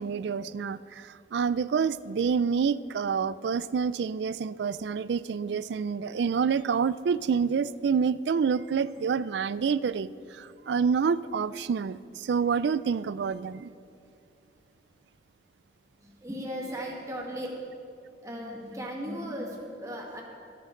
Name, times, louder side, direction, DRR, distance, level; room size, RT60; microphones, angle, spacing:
voice 1, 0.0-13.7, right 6 dB, 75° right, 17 dB, 0.4 m, -28 dB
voice 2, 16.0-17.5 18.2-20.2, equal, 20° right, -1 dB, 1.7 m, -36 dB
25.0 x 8.5 x 3.8 m, 2.7 s
head